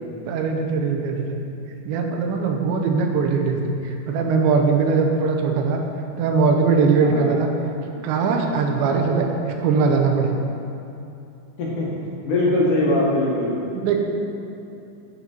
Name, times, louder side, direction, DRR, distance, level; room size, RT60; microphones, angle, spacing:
voice 1, 0.3-1.4 1.8-5.8 6.2-7.5 8.0-10.4 13.7-14.0, right 5 dB, 85° right, 3 dB, 3.0 m, -21 dB
voice 2, 7.0-7.4 8.8-9.1 11.6-11.9 12.2-13.6, left 1 dB, 60° left, -5 dB, 2.4 m, -22 dB
8.5 x 8.3 x 4.4 m, 2.8 s
omnidirectional pair, 5.2 m